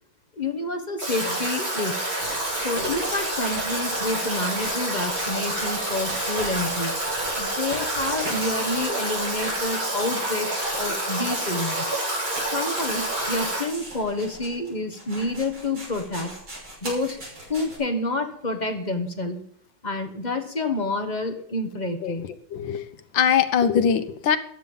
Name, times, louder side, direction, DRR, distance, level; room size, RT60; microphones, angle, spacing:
voice 1, 0.4-2.1 2.6-6.9 7.4-12.0 12.5-16.3 16.8-17.2 17.5-19.4 19.8-22.3, left 2 dB, 25° left, 6 dB, 1.2 m, -29 dB
Stream / Drip / Trickle dribble, 1.0-13.6, right 1 dB, 60° right, 7.0 m, -28 dB
sound 1, 2.2-17.8, right 1 dB, 80° right, 7.1 m, -40 dB
voice 2, 22.5-22.8 23.1-24.4, left 7 dB, 80° left, 10 dB, 1.7 m, -21 dB
14.0 x 9.8 x 5.5 m, 0.64 s
omnidirectional pair, 2.1 m